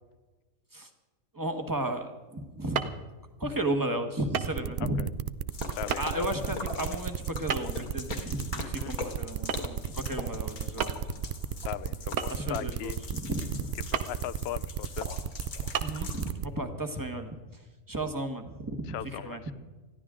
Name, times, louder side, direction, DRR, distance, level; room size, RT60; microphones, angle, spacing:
voice 1, 1.3-2.9 3.4-5.0 6.0-10.9 12.3-13.7 15.8-17.4 17.9-19.5, right 1 dB, 15° right, 6 dB, 1.3 m, -34 dB
sound 1, 2.7-3.0 4.3-4.6 4.9-5.0 5.9-6.0 7.5-7.9 9.5-9.7 10.1-10.2 10.8-11.1 12.2-12.7 13.9-14.2 14.7-14.8 15.7-15.8, right 7 dB, 90° right, 1.4 m, -31 dB
sound 2, 4.4-16.5, right 9 dB, 65° right, 0.5 m, -34 dB
voice 2, 4.8-5.1 5.8-6.3 8.6-8.9 11.7-13.0 13.9-15.1 18.9-19.5, left 12 dB, 60° left, 17 dB, 0.7 m, -38 dB
sound 3, 5.5-16.3, left 3 dB, 80° left, 2.2 m, -41 dB
21.0 x 14.5 x 3.7 m, 1.3 s
omnidirectional pair, 1.5 m